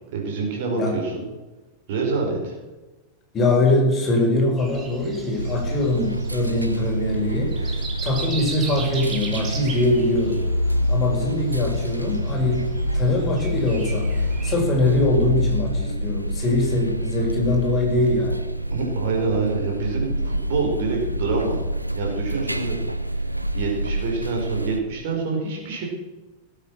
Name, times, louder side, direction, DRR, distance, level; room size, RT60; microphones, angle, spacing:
voice 1, 0.1-1.2 1.9-2.5 18.7-21.6 21.9-22.8 23.5-25.8, right 4 dB, 50° right, 0 dB, 4.9 m, -26 dB
voice 2, 3.3-10.4 10.9-14.1 14.4-18.4, left 2 dB, 25° left, 0 dB, 5.4 m, -23 dB
Breathing, 4.6-14.5, right 4 dB, 25° right, 2.9 m, -38 dB
sound 1, 5.4-24.8, equal, 85° right, 0.8 m, -26 dB
18.5 x 8.9 x 6.2 m, 1.1 s
figure-of-eight pair, 90°, 0 cm